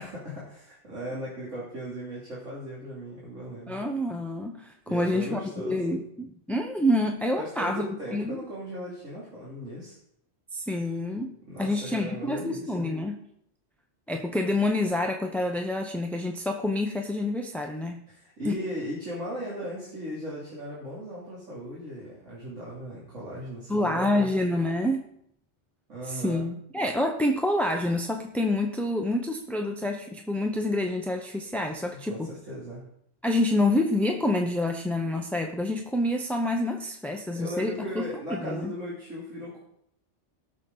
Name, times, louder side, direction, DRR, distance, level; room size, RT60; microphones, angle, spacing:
voice 1, 0.0-3.8 4.9-6.0 7.4-9.9 11.5-12.9 18.1-24.3 25.9-26.5 32.0-32.9 37.3-39.6, equal, 85° right, -8 dB, 3.3 m, -37 dB
voice 2, 3.7-7.8 8.1-8.4 10.5-13.2 14.1-18.0 18.4-18.6 23.7-25.1 26.1-32.3 33.2-38.7, left 1 dB, ahead, 3 dB, 0.6 m, -27 dB
18.5 x 6.5 x 3.9 m, 0.71 s
omnidirectional pair, 1.3 m